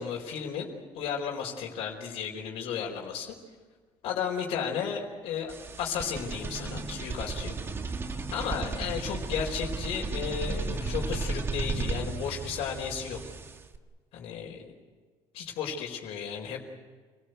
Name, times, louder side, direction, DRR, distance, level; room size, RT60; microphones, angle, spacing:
voice 1, 0.0-3.3 4.0-5.5 5.8-7.5 8.3-13.2 14.1-14.7 15.3-16.6, left 7 dB, 70° left, -1 dB, 4.5 m, -34 dB
sound 1, 5.5-13.8, right 3 dB, 25° right, 1.5 m, -34 dB
29.5 x 19.5 x 8.0 m, 1.4 s
cardioid pair, 165°, 10 cm